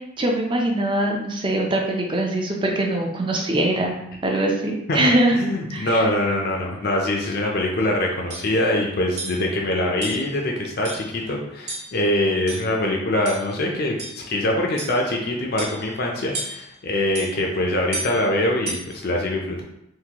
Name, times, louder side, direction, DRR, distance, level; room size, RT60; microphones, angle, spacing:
voice 1, 0.2-4.0 4.2-5.3 5.7-6.0, right 1 dB, 25° right, 0 dB, 0.5 m, -22 dB
voice 2, 4.9-14.0 14.3-19.6, left 1 dB, 50° left, -1 dB, 0.5 m, -23 dB
sound 1, 7.8-7.9 8.3-8.5 9.2-9.5 10.0-10.3 10.8-11.2 11.7-12.0 12.5-12.8 13.3-13.5 14.0-14.3 14.8-15.1 15.6-15.9 16.3-16.7 17.1-17.3 17.9-18.2 18.7-19.0, right 2 dB, 45° right, 1.0 m, -33 dB
3.7 x 2.5 x 2.9 m, 0.83 s
head